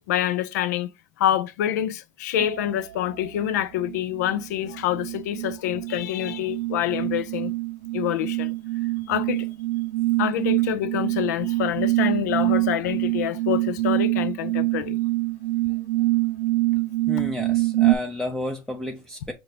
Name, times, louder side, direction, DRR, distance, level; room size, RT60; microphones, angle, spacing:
voice 1, 0.1-0.9 1.2-7.5 7.9-8.5 9.1-9.5 10.2-15.0, left 12 dB, 85° left, 0.5 m, -26 dB
sound 1, 2.4-2.7 3.2-18.0, right 19 dB, 70° right, 0.5 m, -25 dB
voice 2, 17.1-19.3, left 1 dB, 5° left, 0.6 m, -31 dB
5.5 x 2.7 x 3.3 m
supercardioid pair, 100°, 9 cm